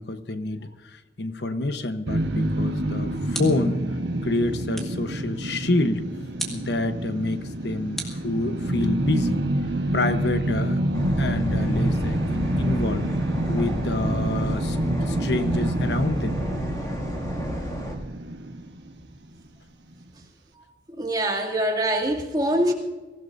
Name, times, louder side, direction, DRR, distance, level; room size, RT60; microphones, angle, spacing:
voice 1, 0.0-6.0 6.5-9.5 9.9-13.1 13.5-14.8 15.1-16.4, left 2 dB, 80° left, 9 dB, 1.1 m, -28 dB
sound 1, 2.1-19.2, right 1 dB, 85° right, 1.2 m, -27 dB
sound 2, 2.6-3.8 4.7-5.1 6.4-6.7 8.0-8.8, right 1 dB, ahead, 2.1 m, -36 dB
sound 3, 10.9-18.0, equal, 20° left, 2.3 m, -32 dB
voice 2, 21.0-22.7, right 1 dB, 25° right, 0 dB, 2.4 m, -24 dB
24.0 x 16.0 x 2.6 m, 1.2 s
head